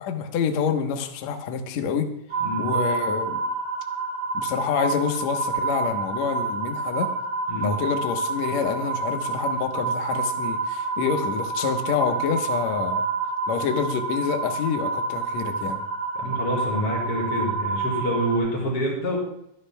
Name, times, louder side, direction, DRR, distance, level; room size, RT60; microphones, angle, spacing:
voice 1, 0.0-2.1 2.6-3.4 4.3-7.1 7.6-13.1 13.5-15.8, left 6 dB, 65° left, 5 dB, 2.0 m, -27 dB
sound 1, 2.3-18.4, right 4 dB, 50° right, 4.5 m, -28 dB
voice 2, 16.2-19.2, equal, 40° left, -4 dB, 5.5 m, -27 dB
23.5 x 12.0 x 2.3 m, 0.76 s
omnidirectional pair, 4.2 m